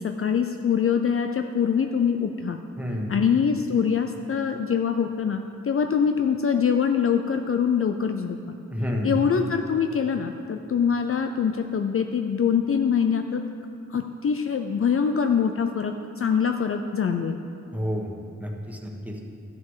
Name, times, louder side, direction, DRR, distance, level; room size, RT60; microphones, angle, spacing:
voice 1, 0.0-2.6 3.1-8.4 9.0-13.4 13.9-17.4, left 7 dB, 50° left, 5 dB, 0.5 m, -24 dB
voice 2, 2.8-3.2 8.7-9.2 17.7-18.1 18.4-19.2, equal, 5° right, 0 dB, 1.4 m, -29 dB
12.0 x 6.4 x 5.6 m, 2.6 s
wide cardioid pair, 80°, 29 cm